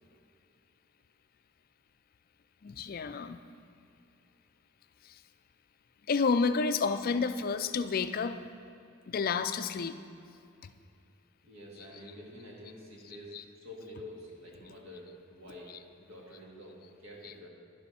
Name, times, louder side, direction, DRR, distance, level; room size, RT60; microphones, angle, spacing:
voice 1, 2.6-3.4 5.0-5.2 6.1-8.4 9.1-10.0 11.9-12.0 13.0-13.4 15.7-15.8 17.2-17.4, left 5 dB, 45° left, 10 dB, 0.4 m, -30 dB
voice 2, 11.4-15.7 16.0-17.5, left 1 dB, 65° right, -2 dB, 2.2 m, -48 dB
11.5 x 11.0 x 4.2 m, 2.5 s
head